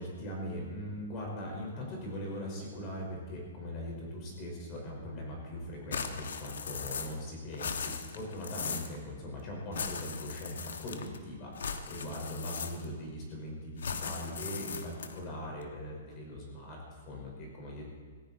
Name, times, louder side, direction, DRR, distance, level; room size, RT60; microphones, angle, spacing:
voice 1, 0.0-17.9, left 1 dB, 25° left, -1 dB, 5.0 m, -40 dB
sound 1, 5.9-7.3 7.5-9.0 9.7-11.2 11.6-13.0 13.8-15.2, left 6 dB, 90° left, 1.4 m, -38 dB
18.5 x 16.0 x 4.3 m, 1.6 s
hypercardioid pair, 160°, 0 cm